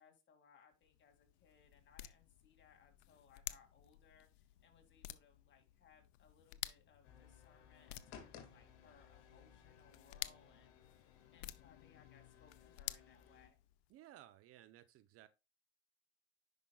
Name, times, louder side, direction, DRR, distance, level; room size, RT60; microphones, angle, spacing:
voice 1, 0.0-10.7 11.3-13.6, left 6 dB, 35° left, 2.5 m, -68 dB
sound 1, 0.7-13.9, left 16 dB, 75° left, 0.6 m, -53 dB
sound 2, 7.0-13.5, left 7 dB, 60° left, 2.4 m, -61 dB
voice 2, 13.9-15.3, right 13 dB, 45° right, 0.7 m, -59 dB
10.0 x 5.3 x 2.4 m
hypercardioid pair, 95°, 32 cm